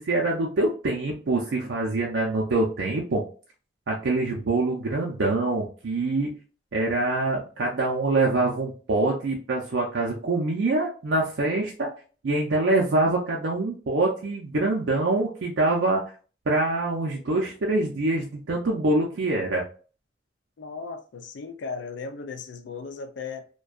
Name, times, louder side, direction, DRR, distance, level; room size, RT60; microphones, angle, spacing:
voice 1, 0.0-3.2 3.9-6.3 6.7-11.9 12.2-16.0 16.5-19.6, right 2 dB, 80° right, 0.5 m, -25 dB
voice 2, 20.6-23.5, left 4 dB, 75° left, 0.4 m, -36 dB
2.5 x 2.2 x 2.3 m
head